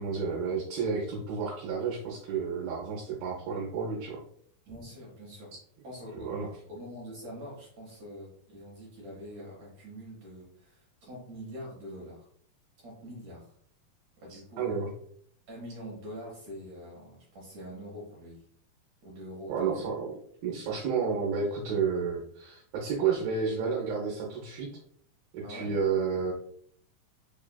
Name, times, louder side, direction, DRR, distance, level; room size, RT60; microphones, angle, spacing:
voice 1, 0.0-4.2 6.1-6.5 14.3-14.9 19.5-20.1 20.4-24.7 25.3-26.3, right 5 dB, 80° right, -3 dB, 2.5 m, -31 dB
voice 2, 4.7-5.6 5.8-12.3 12.8-13.5 14.2-14.7 15.5-18.4 19.0-19.8 25.4-25.7, equal, 65° right, -5 dB, 1.8 m, -44 dB
5.5 x 2.3 x 2.2 m, 0.64 s
omnidirectional pair, 4.2 m